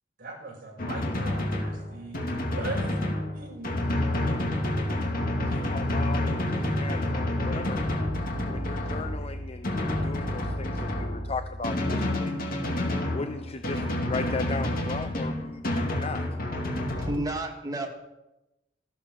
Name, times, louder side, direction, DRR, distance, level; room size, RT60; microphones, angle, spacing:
voice 1, 0.2-2.2 2.5-3.0 3.3-4.3, right 2 dB, 50° right, -1 dB, 5.3 m, -40 dB
Drum, 0.8-17.2, left 1 dB, 50° left, 2.4 m, -29 dB
voice 2, 5.5-7.8 8.5-12.4 13.1-15.6 15.9-16.3, left 3 dB, 30° left, 9 dB, 0.6 m, -37 dB
voice 3, 16.7-17.9, right 1 dB, 20° right, 1 dB, 2.2 m, -32 dB
15.0 x 12.5 x 6.3 m, 0.96 s
head